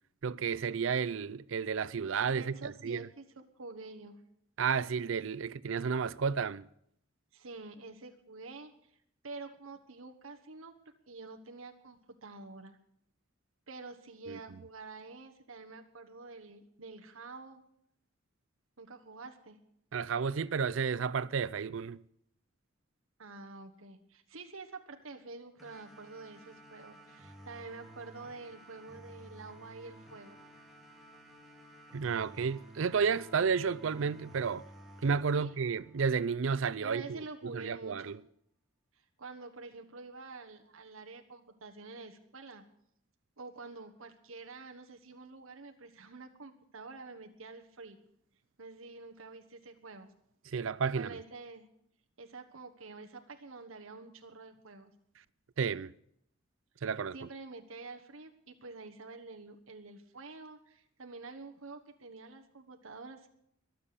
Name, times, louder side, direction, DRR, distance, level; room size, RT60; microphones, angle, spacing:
voice 1, 0.2-3.1 4.6-6.7 14.3-14.4 19.9-22.0 31.9-34.6 35.0-38.2 50.5-51.2 55.6-55.9 56.8-57.2, right 6 dB, 65° right, 0.5 m, -32 dB
voice 2, 2.3-4.2 7.3-9.0 9.2-10.7 11.1-12.8 13.7-17.6 18.8-19.6 23.2-30.4 35.3-35.5 36.8-38.1 38.9-42.6 43.4-48.0 48.6-50.1 50.9-51.7 52.2-54.9 56.8-63.3, right 3 dB, 80° right, 1.3 m, -48 dB
sound 1, 25.6-36.6, right 1 dB, ahead, 2.4 m, -54 dB
22.5 x 7.6 x 6.8 m
head